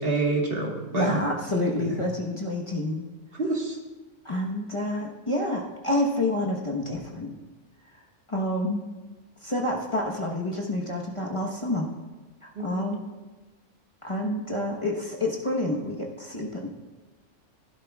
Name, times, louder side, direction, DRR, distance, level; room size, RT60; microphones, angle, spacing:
voice 1, 0.0-1.2 1.8-1.9 3.4-3.8 12.5-12.8, right 3 dB, 45° right, -1 dB, 1.7 m, -27 dB
voice 2, 0.9-3.0 4.2-7.4 8.3-8.8 9.4-11.9 12.4-13.0 14.0-16.7, left 1 dB, 25° left, -2 dB, 1.1 m, -28 dB
15.0 x 11.5 x 2.3 m, 1.2 s
omnidirectional pair, 1.3 m